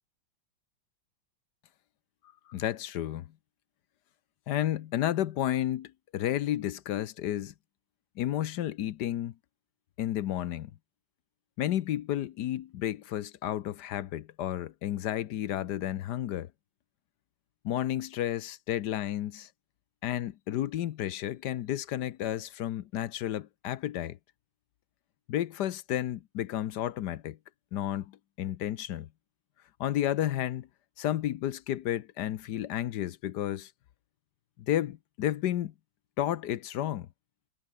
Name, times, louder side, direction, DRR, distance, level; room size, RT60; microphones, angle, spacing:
voice 1, 2.5-3.3 4.5-7.5 8.2-9.3 10.0-10.7 11.6-16.5 17.6-19.5 20.0-24.2 25.3-27.4 27.7-29.1 29.8-30.7 31.0-33.7 34.7-35.7 36.2-37.1, left 12 dB, 65° left, 1.2 m, -32 dB
omnidirectional pair, 2.2 m